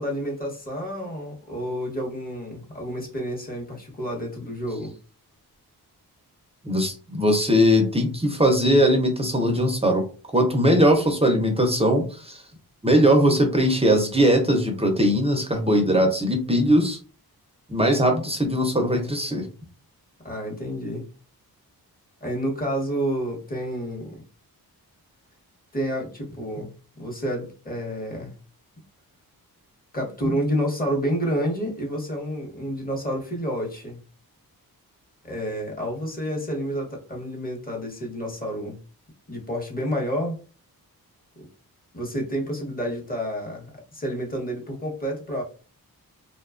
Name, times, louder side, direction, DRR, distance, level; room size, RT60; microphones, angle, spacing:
voice 1, 0.0-4.9 20.2-21.1 22.2-24.2 25.7-28.3 29.9-34.0 35.2-38.8 39.3-40.4 41.9-45.4, equal, 25° left, 0 dB, 0.9 m, -29 dB
voice 2, 6.6-10.1 10.3-12.4 12.8-17.0 17.7-19.5, equal, 15° right, 3 dB, 0.5 m, -20 dB
2.8 x 2.2 x 2.4 m, 0.36 s
wide cardioid pair, 100°, 38 cm